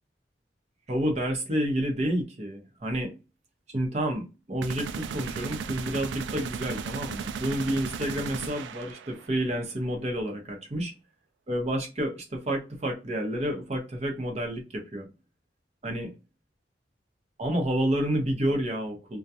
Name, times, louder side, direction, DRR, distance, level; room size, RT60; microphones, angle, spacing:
voice 1, 0.9-3.2 3.7-10.9 11.5-15.1 15.8-16.1 17.4-19.2, equal, 40° right, 0.8 m, -29 dB
sound 1, 4.6-9.4, right 6 dB, 85° right, 0.3 m, -35 dB
2.3 x 2.2 x 2.7 m
head